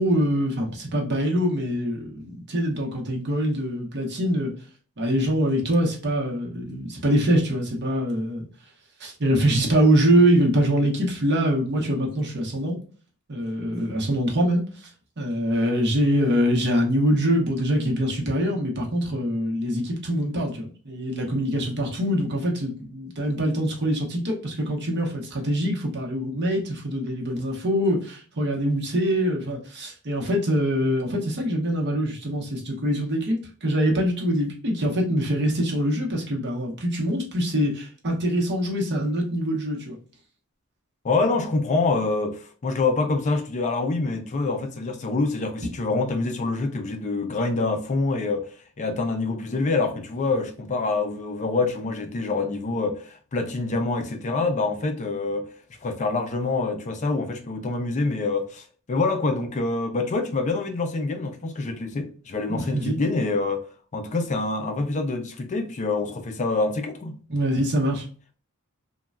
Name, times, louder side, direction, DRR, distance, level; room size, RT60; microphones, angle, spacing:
voice 1, 0.0-4.5 5.0-8.5 9.0-12.8 13.3-14.6 15.2-40.0 62.7-63.0 67.3-68.1, equal, 50° right, 0.8 m, -24 dB
voice 2, 41.0-55.5 55.8-63.6 63.9-67.2, left 3 dB, 35° left, 0.4 m, -26 dB
3.1 x 2.2 x 2.4 m
head